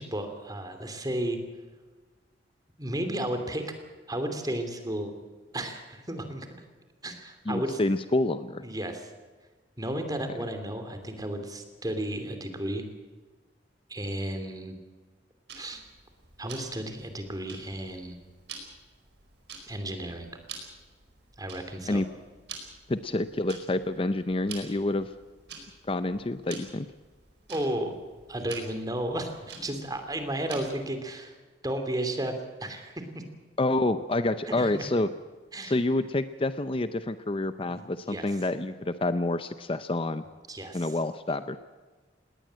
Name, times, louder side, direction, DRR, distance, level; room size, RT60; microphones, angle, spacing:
voice 1, 0.0-1.4 2.8-3.7 4.1-5.2 5.5-6.5 7.0-7.8 8.6-9.1 9.8-12.9 13.9-14.8 15.5-15.8 16.4-18.2 19.7-20.3 21.4-22.0 27.5-27.9 28.3-31.3 31.6-33.2 34.5-34.8 35.5-35.8 37.7-38.4 40.5-41.0 41.3-41.4, right 1 dB, 20° right, 7 dB, 2.8 m, -33 dB
voice 2, 7.5-8.6 21.9-22.1 22.9-25.1 25.8-26.9 33.6-35.1 35.6-40.2 40.7-41.6, left 2 dB, 30° left, 12 dB, 0.6 m, -28 dB
Tick-tock, 15.5-30.9, right 5 dB, 65° right, 4.9 m, -48 dB
20.0 x 18.5 x 7.6 m, 1.3 s
head